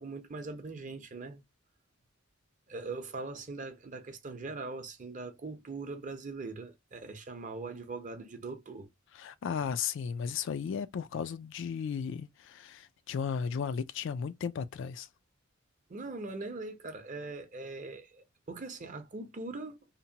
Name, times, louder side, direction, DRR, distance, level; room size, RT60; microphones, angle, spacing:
voice 1, 0.0-1.4 2.7-8.9 15.9-19.8, right 3 dB, 40° right, 0.6 m, -41 dB
voice 2, 9.2-15.1, left 6 dB, 65° left, 0.3 m, -35 dB
2.8 x 2.2 x 2.7 m
head